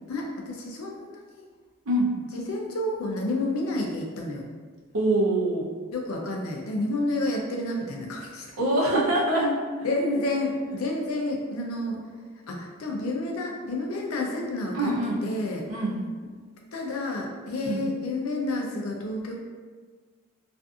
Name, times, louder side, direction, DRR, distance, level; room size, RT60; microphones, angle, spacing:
voice 1, 0.1-1.4 2.3-4.5 5.9-8.6 9.8-12.0 12.5-14.9 15.2-15.6 16.7-19.3, left 2 dB, 85° left, 0 dB, 0.5 m, -30 dB
voice 2, 4.9-5.7 8.6-9.6 14.7-15.2 15.7-16.0 17.7-17.8, right 1 dB, 80° right, -3 dB, 0.6 m, -24 dB
2.5 x 2.5 x 2.4 m, 1.5 s
head